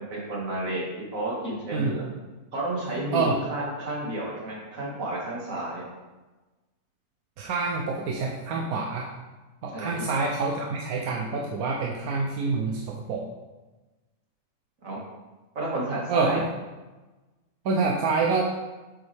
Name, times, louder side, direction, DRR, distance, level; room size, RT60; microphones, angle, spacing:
voice 1, 0.0-2.0 2.5-5.8 9.7-10.1 14.8-15.0 15.5-16.4, right 1 dB, 65° right, -5 dB, 2.6 m, -31 dB
voice 2, 7.4-9.1 9.6-13.3 16.1-16.5 17.6-18.5, right 4 dB, 90° right, -1 dB, 1.3 m, -27 dB
7.7 x 7.0 x 3.5 m, 1.2 s
omnidirectional pair, 1.5 m